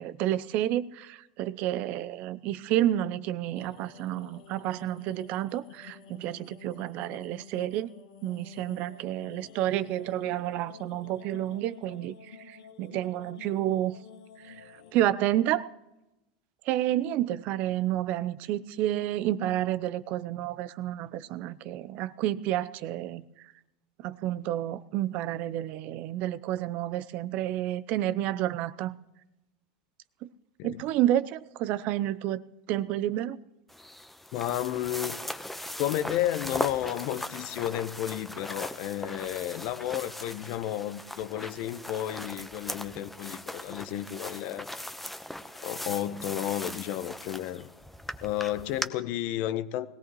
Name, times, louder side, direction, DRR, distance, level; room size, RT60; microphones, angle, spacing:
voice 1, 0.0-7.9 8.2-14.0 14.4-14.6 14.9-15.7 16.7-23.2 24.0-29.0 30.2-30.3 30.6-32.4 32.7-33.4, right 13 dB, 55° right, 17 dB, 0.6 m, -30 dB
sound 1, 3.5-14.9, left 6 dB, 75° left, 2.0 m, -50 dB
sound 2, 33.7-48.9, left 1 dB, 5° left, 1.0 m, -39 dB
voice 2, 34.3-35.2 35.8-44.7 45.6-47.7 48.2-49.9, left 12 dB, 55° left, 13 dB, 0.9 m, -32 dB
21.0 x 16.5 x 3.1 m, 0.94 s
hypercardioid pair, 95°, 3 cm